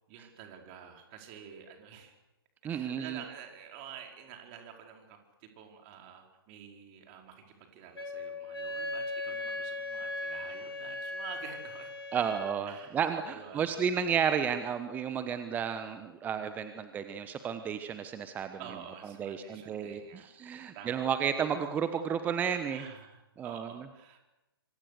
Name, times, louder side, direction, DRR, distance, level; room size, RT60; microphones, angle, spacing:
voice 1, 0.1-2.1 2.7-11.9 12.7-13.0 13.2-13.7 18.6-20.3 20.7-21.2 22.7-24.2, right 8 dB, 30° right, 3 dB, 4.7 m, -49 dB
voice 2, 2.6-3.2 12.1-18.6 19.2-20.0 20.4-22.8 23.4-23.8, right 7 dB, 15° right, 9 dB, 1.2 m, -32 dB
Wind instrument woodwind instrument, 7.9-12.6, left 2 dB, 80° left, 5.3 m, -38 dB
26.5 x 26.0 x 6.7 m, 1.0 s
figure-of-eight pair, 125°, 13 cm